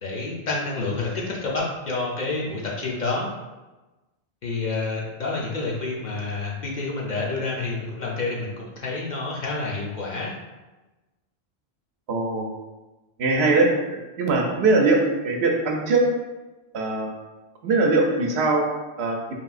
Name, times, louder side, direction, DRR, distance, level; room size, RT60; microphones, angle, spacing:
voice 1, 0.0-3.3 4.4-10.3, left 3 dB, 55° left, -3 dB, 0.6 m, -28 dB
voice 2, 12.1-12.5 13.2-13.7 14.2-16.0 16.7-17.1 17.6-18.7 19.0-19.2, right 3 dB, 80° right, 1 dB, 0.8 m, -21 dB
3.2 x 2.6 x 2.4 m, 1.1 s
omnidirectional pair, 1.1 m